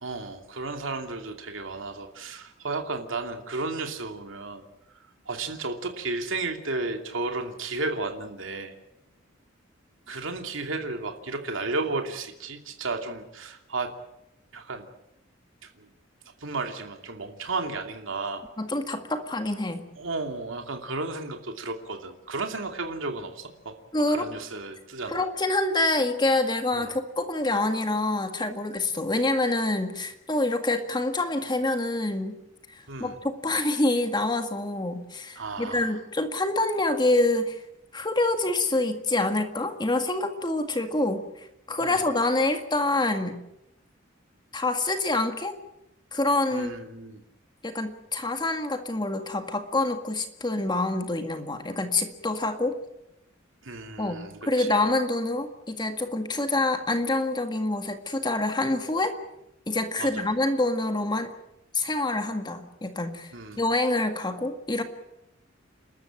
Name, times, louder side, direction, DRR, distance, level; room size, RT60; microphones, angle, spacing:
voice 1, 0.0-4.6 5.3-8.7 10.1-13.9 14.5-14.9 15.6-15.9 16.4-18.4 20.0-23.8 24.1-25.2 26.7-26.9 32.9-33.2 35.4-36.0 41.8-42.0 46.5-47.2 53.6-54.9 60.0-60.2 63.3-63.6, right 3 dB, 75° right, 4 dB, 2.7 m, -33 dB
voice 2, 18.6-19.9 23.9-24.3 25.1-32.4 32.7-37.6 37.9-43.4 44.5-45.5 46.1-46.7 47.6-52.8 54.0-59.2 59.7-61.3 61.7-64.8, left 2 dB, 20° left, 7 dB, 1.8 m, -26 dB
30.0 x 13.5 x 8.9 m, 0.86 s
head